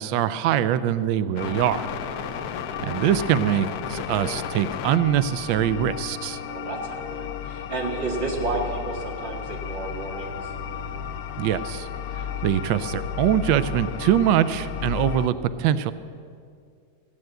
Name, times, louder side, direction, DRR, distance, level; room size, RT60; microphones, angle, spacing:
voice 1, 0.0-1.9 2.8-6.4 11.4-11.9 12.4-15.9, right 10 dB, 75° right, 13 dB, 1.1 m, -23 dB
sound 1, 1.4-15.3, left 8 dB, 75° left, 0.8 m, -33 dB
voice 2, 2.0-2.4 6.5-10.5, right 3 dB, 60° right, -1 dB, 2.8 m, -31 dB
16.0 x 9.1 x 7.8 m, 2.3 s
omnidirectional pair, 2.3 m